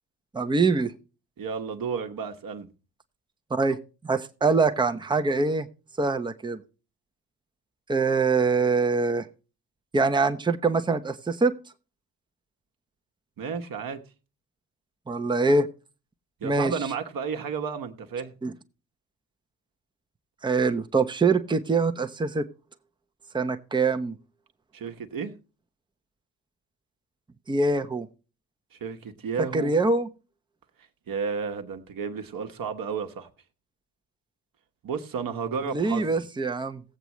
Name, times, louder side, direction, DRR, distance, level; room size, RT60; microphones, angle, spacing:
voice 1, 0.3-0.9 3.5-3.8 4.0-5.7 6.0-6.6 7.9-9.2 9.9-11.5 15.1-15.7 16.4-16.7 18.4-18.5 20.4-22.4 23.3-24.1 27.5-28.1 29.5-30.1 35.7-36.8, right 3 dB, 10° right, 0.8 m, -24 dB
voice 2, 1.4-2.7 13.4-14.0 16.4-18.3 24.7-25.3 28.7-29.7 31.1-33.3 34.8-36.2, right 6 dB, 40° right, 1.3 m, -32 dB
17.5 x 8.0 x 3.1 m
figure-of-eight pair, 45°, 50 cm